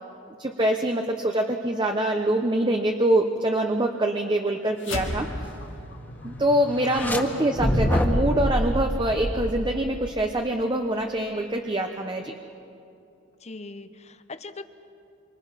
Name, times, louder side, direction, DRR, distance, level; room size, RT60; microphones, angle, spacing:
voice 1, 0.4-5.3 6.2-12.3, right 1 dB, 25° right, 3 dB, 1.0 m, -24 dB
sound 1, 4.8-9.4, left 1 dB, 85° left, 2.6 m, -37 dB
sound 2, 6.8-7.2 7.6-10.1, equal, 10° left, 1.8 m, -25 dB
voice 2, 13.4-14.6, left 3 dB, 35° left, 11 dB, 0.9 m, -40 dB
28.0 x 25.0 x 5.8 m, 2.6 s
head